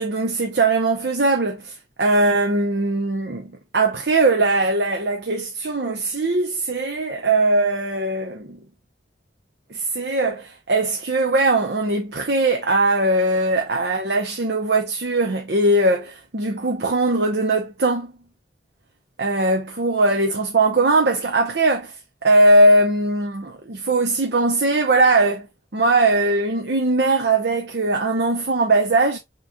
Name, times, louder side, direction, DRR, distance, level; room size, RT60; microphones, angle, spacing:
voice 1, 0.0-1.7 2.0-8.6 9.7-18.1 19.2-21.9 22.2-25.5 25.7-29.2, right 2 dB, 70° right, 0.8 m, -20 dB
6.3 x 3.1 x 2.4 m
head